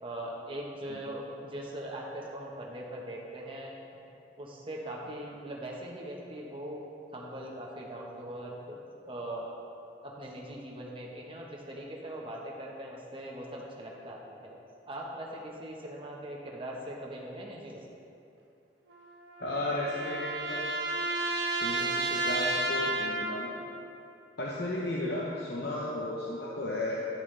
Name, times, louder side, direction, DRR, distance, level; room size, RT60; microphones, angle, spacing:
voice 1, 0.0-4.0 4.4-6.8 7.1-8.8 9.0-9.5 10.0-14.6 14.9-17.9, right 1 dB, 30° right, -2 dB, 1.2 m, -41 dB
sound 1, 18.9-23.6, right 2 dB, 90° right, 1.1 m, -32 dB
voice 2, 19.4-20.6 21.5-23.6 24.4-27.0, left 1 dB, 65° left, -4 dB, 0.8 m, -34 dB
11.0 x 7.1 x 3.3 m, 2.7 s
head